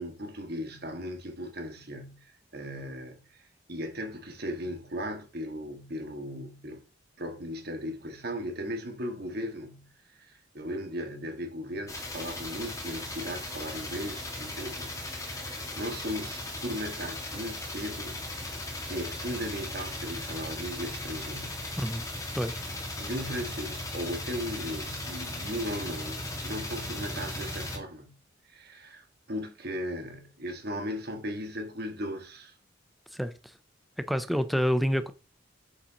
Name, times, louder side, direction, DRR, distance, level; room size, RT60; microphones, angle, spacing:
voice 1, 0.0-6.8 7.2-18.5 18.8-21.7 23.0-28.1 28.4-32.5, equal, 55° right, 1.7 m, -37 dB
sound 1, 11.9-27.8, left 1 dB, 15° left, 1.8 m, -37 dB
voice 2, 21.8-22.1 22.3-22.6 33.1-33.3 34.0-35.1, equal, ahead, 0.5 m, -28 dB
7.1 x 6.9 x 2.9 m
head